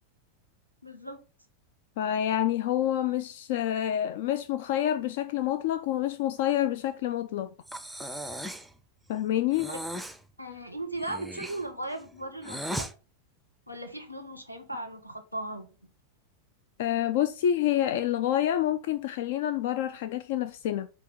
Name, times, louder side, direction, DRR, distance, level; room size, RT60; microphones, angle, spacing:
voice 1, 0.8-1.2 9.7-9.8 10.4-12.9 13.7-15.7, right 1 dB, 90° left, 1.3 m, -37 dB
voice 2, 2.0-7.5 9.1-9.7 16.8-20.9, left 11 dB, 55° left, 0.4 m, -27 dB
Breathing, 7.7-8.7 9.5-10.2 10.9-12.9, equal, ahead, 0.6 m, -37 dB
8.2 x 2.9 x 5.8 m
figure-of-eight pair, 90°, 0 cm